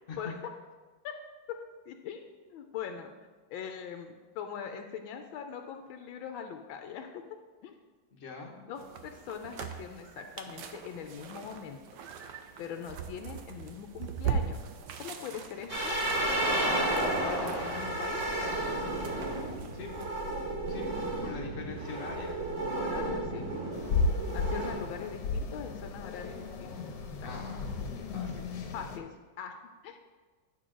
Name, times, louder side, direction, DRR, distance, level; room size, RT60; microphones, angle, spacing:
voice 1, 1.9-3.1 3.5-7.2 7.6-7.7 8.6-11.8 12.6-14.6 15.0-16.0 16.6-18.2 22.7-23.5 24.3-26.5 26.8-26.9 28.7-29.1 29.4-30.0, left 7 dB, 90° left, 5 dB, 1.4 m, -41 dB
voice 2, 8.1-8.6 19.7-20.1 20.7-22.3 27.2-27.6 28.0-28.5, left 4 dB, 45° left, -3 dB, 1.2 m, -43 dB
sound 1, 8.8-20.1, right 7 dB, 70° right, 1.2 m, -40 dB
sound 2, 15.7-24.7, right 1 dB, 40° right, 2.5 m, -32 dB
sound 3, 23.7-29.0, left 3 dB, 65° left, 1.4 m, -34 dB
11.0 x 6.4 x 3.8 m, 1.4 s
omnidirectional pair, 2.1 m